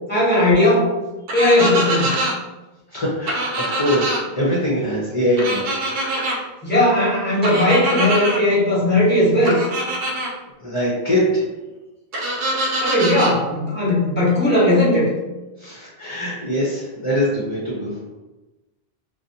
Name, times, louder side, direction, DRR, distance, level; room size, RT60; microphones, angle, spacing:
voice 1, 0.1-0.8 1.3-2.2 6.6-9.6 12.8-15.1, left 1 dB, 10° left, -8 dB, 0.9 m, -17 dB
sound 1, 1.3-2.3 3.3-4.2 5.4-6.4 7.4-8.4 9.4-10.3 12.1-13.3, right 1 dB, 65° right, 0.8 m, -23 dB
voice 2, 2.9-5.7 10.6-11.5 12.4-12.7 15.6-18.0, equal, 40° left, -6 dB, 0.5 m, -23 dB
2.5 x 2.0 x 2.7 m, 1.1 s
omnidirectional pair, 1.1 m